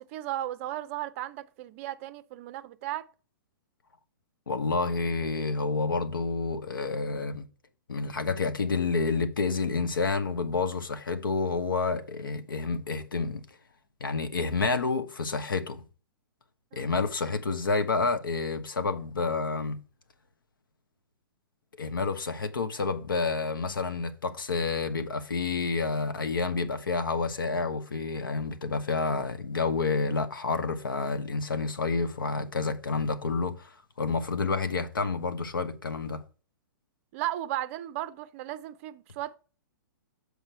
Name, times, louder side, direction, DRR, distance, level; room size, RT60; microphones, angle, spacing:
voice 1, 0.0-3.1 16.7-16.9 37.1-39.4, right 14 dB, 40° right, 0.5 m, -35 dB
voice 2, 4.5-7.4 7.9-13.4 14.0-15.8 16.7-19.8 21.8-36.2, left 4 dB, 85° left, 1.0 m, -29 dB
6.7 x 4.9 x 4.5 m
hypercardioid pair, 125°, 11 cm